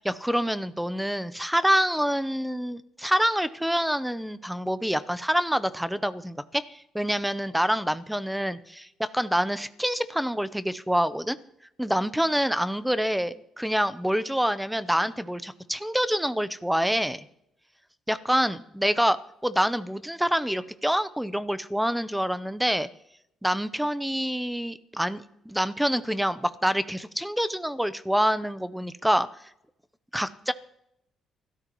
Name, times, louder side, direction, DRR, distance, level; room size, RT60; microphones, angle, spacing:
voice 1, 0.0-11.4 11.8-17.3 18.1-19.2 19.4-22.9 23.4-29.3 30.1-30.5, equal, 5° right, 14 dB, 0.7 m, -26 dB
27.5 x 13.0 x 3.1 m, 0.80 s
cardioid pair, 90°, 0 cm